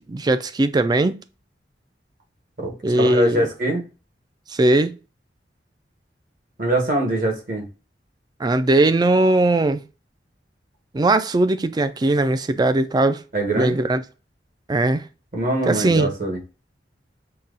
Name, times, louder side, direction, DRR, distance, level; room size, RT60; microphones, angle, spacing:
voice 1, 0.1-1.1 2.8-3.5 4.5-4.9 8.4-9.8 10.9-13.2 13.5-14.0 14.7-15.0 15.7-16.1, right 2 dB, 25° right, 0.4 m, -19 dB
voice 2, 2.6-3.8 6.6-7.7 13.3-13.8 15.3-16.4, right 1 dB, 50° right, 1.2 m, -23 dB
5.5 x 2.3 x 2.4 m
head